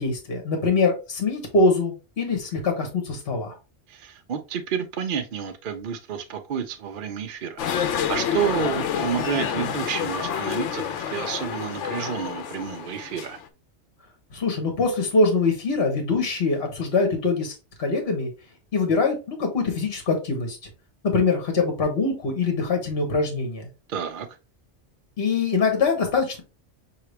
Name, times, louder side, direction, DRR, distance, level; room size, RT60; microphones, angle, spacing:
voice 1, 0.0-3.5 14.3-18.3 18.7-20.6 21.1-23.6 25.2-26.4, left 3 dB, 55° left, 1.4 m, -23 dB
voice 2, 3.9-13.4 23.9-24.3, right 8 dB, 55° right, 0.6 m, -30 dB
sound 1, 7.6-13.4, left 8 dB, 80° left, 1.0 m, -28 dB
5.7 x 2.9 x 3.2 m
omnidirectional pair, 1.2 m